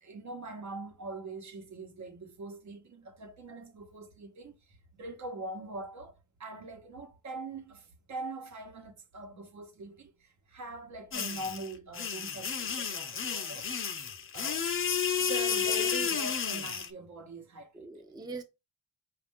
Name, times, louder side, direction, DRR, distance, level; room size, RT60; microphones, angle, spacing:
voice 1, 0.0-4.5 4.9-13.7 14.3-14.7 15.4-17.9, right 2 dB, 60° right, 1.0 m, -43 dB
sound 1, 11.1-16.9, left 7 dB, 40° left, 0.6 m, -32 dB
voice 2, 15.2-16.1 17.7-18.4, right 3 dB, 10° right, 0.6 m, -40 dB
5.1 x 2.5 x 3.5 m
cardioid pair, 105°, 32 cm